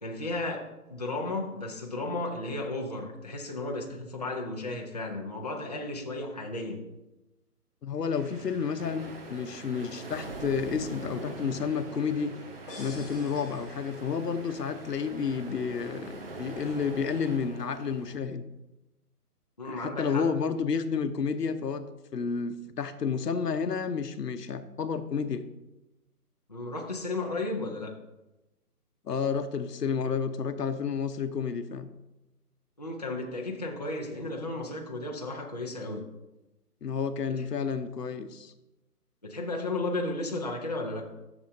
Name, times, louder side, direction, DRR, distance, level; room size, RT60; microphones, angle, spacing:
voice 1, 0.0-0.6 0.9-6.8 19.6-20.2 26.5-27.9 32.8-36.0 39.2-41.1, left 2 dB, 25° left, -1 dB, 0.6 m, -34 dB
voice 2, 7.8-12.3 12.8-18.4 19.6-25.4 29.0-31.9 36.8-38.5, left 6 dB, 85° left, 10 dB, 1.0 m, -31 dB
sound 1, 8.2-17.4, right 3 dB, 70° right, 1.5 m, -50 dB
sound 2, 8.8-18.2, right 2 dB, 40° right, 0.7 m, -43 dB
sound 3, 12.7-14.5, left 2 dB, 10° left, 1.3 m, -48 dB
12.0 x 7.1 x 2.7 m, 0.98 s
hypercardioid pair, 165°, 47 cm